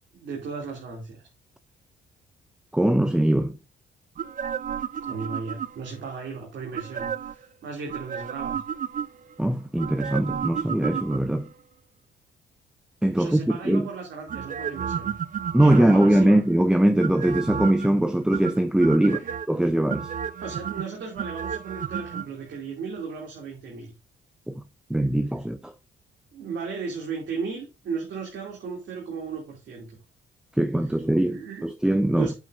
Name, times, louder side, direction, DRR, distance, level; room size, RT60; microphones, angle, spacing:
voice 1, 0.1-1.2 5.0-8.6 13.2-15.1 15.6-16.4 19.0-19.3 20.4-23.9 26.3-30.0 31.3-31.6 32.2-32.3, right 5 dB, 65° right, 2.9 m, -35 dB
voice 2, 2.7-3.6 9.4-11.5 13.0-13.9 15.5-19.2 19.5-20.1 24.5-24.6 24.9-25.7 30.5-32.3, right 1 dB, 5° right, 0.7 m, -21 dB
sound 1, 4.2-6.0 6.7-7.5 7.9-9.3 9.8-11.5 14.3-16.4 17.0-17.9 18.3-19.5 19.9-22.3 22.5-22.6, right 8 dB, 40° right, 0.5 m, -32 dB
8.8 x 8.1 x 2.7 m
cardioid pair, 90°, 20 cm